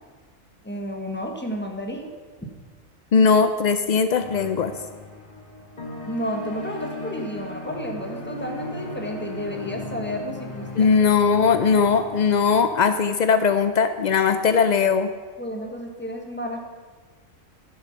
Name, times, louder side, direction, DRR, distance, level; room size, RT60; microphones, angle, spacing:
voice 1, 0.6-2.1 6.0-10.9 15.4-16.6, equal, 10° left, 2 dB, 1.4 m, -32 dB
voice 2, 3.1-4.7 10.8-15.1, left 5 dB, 80° left, 10 dB, 0.4 m, -19 dB
sound 1, 4.2-12.7, left 2 dB, 30° left, 1.8 m, -36 dB
11.5 x 7.8 x 5.9 m, 1.4 s
omnidirectional pair, 1.3 m